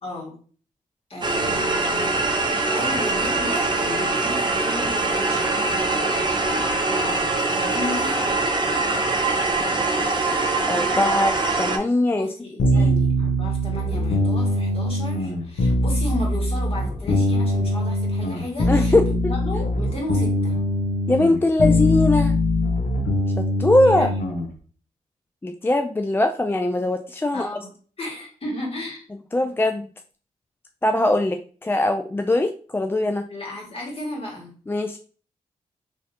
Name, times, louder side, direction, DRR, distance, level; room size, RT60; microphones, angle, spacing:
voice 1, 0.0-0.4 1.1-2.2 2.7-8.3 8.7-8.9 9.9-10.3 10.6-11.1 12.1-20.6 23.8-24.2 27.3-27.7 28.0-29.0 33.3-34.5, left 2 dB, 40° left, -2 dB, 2.0 m, -34 dB
sound 1, 1.2-11.8, right 3 dB, 30° right, 0.7 m, -23 dB
voice 2, 10.7-12.3 12.7-12.9 18.7-19.3 21.1-22.4 23.4-24.1 25.4-27.5 29.3-29.9 30.8-33.3 34.7-35.0, left 1 dB, 15° left, 5 dB, 0.3 m, -21 dB
sound 2, 12.6-24.5, left 1 dB, 85° left, 0.9 m, -22 dB
3.7 x 3.1 x 2.8 m, 0.42 s
cardioid pair, 55°, 14 cm